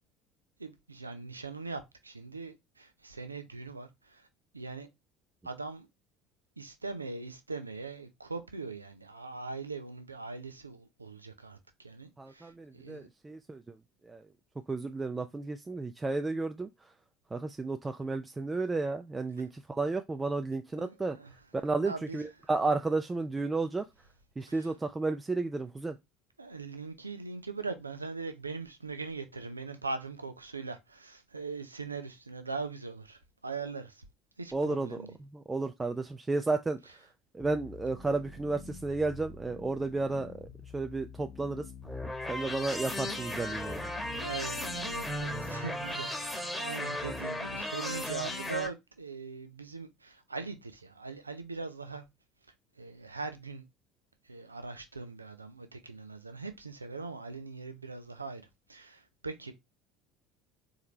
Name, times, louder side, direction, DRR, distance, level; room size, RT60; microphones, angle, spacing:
voice 1, 0.6-4.3 4.5-4.9 5.4-5.9 6.6-13.1 20.8-21.3 21.8-22.2 24.5-24.7 26.4-34.0 34.4-35.1 44.2-52.0 52.8-53.6 54.2-59.5, right 4 dB, 85° right, 0.6 m, -41 dB
voice 2, 12.2-13.8 14.0-14.2 14.7-16.9 17.3-21.2 21.5-23.9 24.4-26.0 34.5-36.8 37.3-40.5 40.7-41.7 42.3-43.9, right 3 dB, 15° right, 0.4 m, -32 dB
sound 1, 37.4-45.2, left 5 dB, 40° left, 0.8 m, -48 dB
sound 2, 41.8-48.7, left 1 dB, 10° left, 1.2 m, -36 dB
4.4 x 3.7 x 3.1 m
figure-of-eight pair, 65°, 0 cm